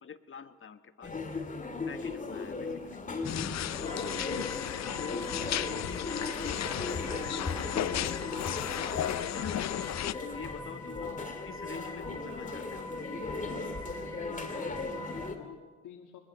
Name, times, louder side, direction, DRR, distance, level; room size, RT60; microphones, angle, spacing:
voice 1, 0.0-1.2 1.9-3.0 3.6-8.0 8.3-9.8 10.2-11.1 11.4-12.9 14.5-14.6, left 6 dB, 45° left, 9 dB, 1.5 m, -46 dB
sound 1, 1.0-15.4, left 3 dB, 25° left, 2.7 m, -37 dB
voice 2, 2.5-2.9 4.4-4.9 11.0-11.3 14.1-16.2, left 8 dB, 85° left, 2 dB, 2.3 m, -49 dB
sound 2, 3.2-10.1, left 12 dB, 60° left, 0.7 m, -35 dB
sound 3, 3.8-15.3, left 1 dB, 10° left, 7.4 m, -44 dB
23.5 x 20.5 x 6.9 m, 1.2 s
cardioid pair, 90°, 30 cm